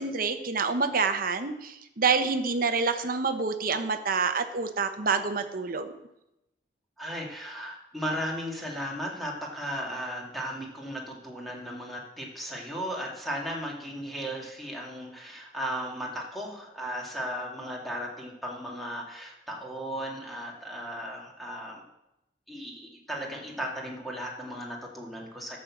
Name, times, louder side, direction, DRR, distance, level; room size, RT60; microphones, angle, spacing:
voice 1, 0.0-5.9, right 4 dB, 50° right, 8 dB, 1.0 m, -27 dB
voice 2, 7.0-21.8 22.5-25.6, equal, ahead, -2 dB, 2.4 m, -36 dB
12.0 x 6.4 x 7.3 m, 0.88 s
head